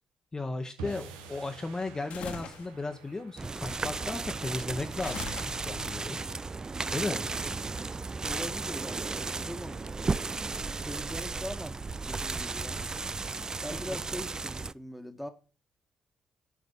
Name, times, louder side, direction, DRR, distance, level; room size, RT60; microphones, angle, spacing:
voice 1, 0.3-6.2 6.9-7.2 13.7-14.0, left 3 dB, 25° left, 1.1 m, -35 dB
sound 1, 0.8-7.2, right 5 dB, 80° right, 1.0 m, -50 dB
sound 2, 2.1-2.7 5.0-6.0, left 5 dB, 65° left, 1.6 m, -40 dB
sound 3, 3.4-14.7, right 4 dB, 30° right, 0.4 m, -34 dB
voice 2, 6.9-7.5 8.2-10.1 10.8-12.8 13.6-15.3, equal, ahead, 1.7 m, -42 dB
8.2 x 5.0 x 7.0 m
hypercardioid pair, 45°, 2 cm